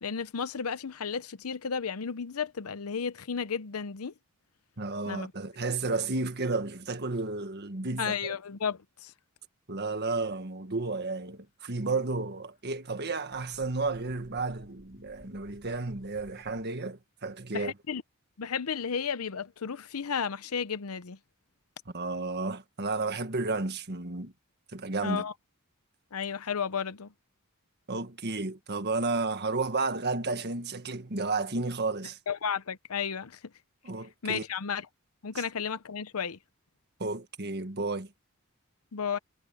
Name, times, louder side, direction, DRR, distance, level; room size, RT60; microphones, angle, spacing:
voice 1, 0.0-4.1 5.1-5.3 8.0-9.1 17.5-18.0 18.4-21.2 25.0-25.3 26.1-27.1 32.3-33.4 34.2-34.9 35.2-36.4 38.9-39.2, left 6 dB, 85° left, 0.7 m, -33 dB
voice 2, 4.8-8.1 9.7-17.7 21.8-24.3 24.7-25.3 27.9-32.2 33.8-34.4 37.0-38.1, right 3 dB, 50° right, 1.7 m, -32 dB
sound 1, 11.5-16.6, equal, 45° left, 7.6 m, -57 dB
head